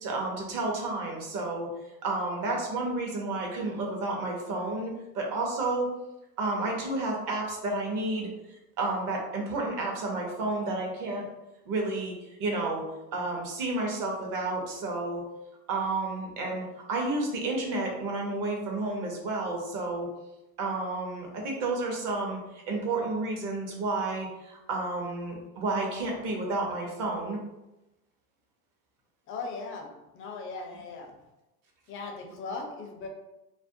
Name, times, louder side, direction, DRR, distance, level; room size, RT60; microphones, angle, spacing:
voice 1, 0.0-1.7 2.0-5.9 6.4-8.3 8.8-11.3 11.7-12.9 13.1-15.2 15.7-20.1 20.6-22.4 22.7-27.4, right 2 dB, 45° right, 0 dB, 0.8 m, -31 dB
voice 2, 29.3-29.9 30.1-31.1 31.9-33.1, left 4 dB, 30° left, 2 dB, 0.4 m, -38 dB
2.5 x 2.1 x 2.6 m, 0.96 s
supercardioid pair, 110°, 47 cm